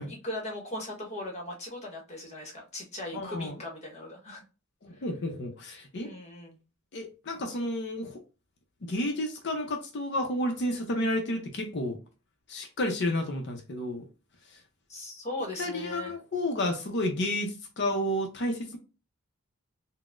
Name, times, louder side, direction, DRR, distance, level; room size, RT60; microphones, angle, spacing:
voice 1, 0.0-4.4 4.9-5.0 6.0-6.6 14.9-16.1, left 1 dB, 35° left, 1.1 m, -38 dB
voice 2, 3.1-3.5 4.8-6.1 6.9-8.2 8.8-12.0 12.5-14.0 15.6-18.8, left 1 dB, 55° left, 0.6 m, -31 dB
3.8 x 2.1 x 2.4 m
head